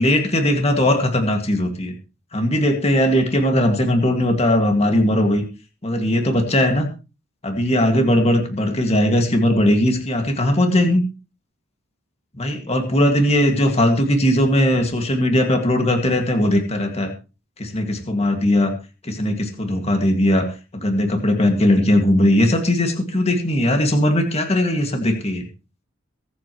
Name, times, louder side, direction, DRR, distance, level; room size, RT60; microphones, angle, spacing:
voice 1, 0.0-1.9 2.3-5.4 5.8-6.9 7.4-11.0 12.4-17.1 17.6-18.7 19.0-20.5 20.7-25.5, left 1 dB, 30° left, 4 dB, 2.1 m, -19 dB
23.0 x 8.6 x 3.1 m, 0.31 s
head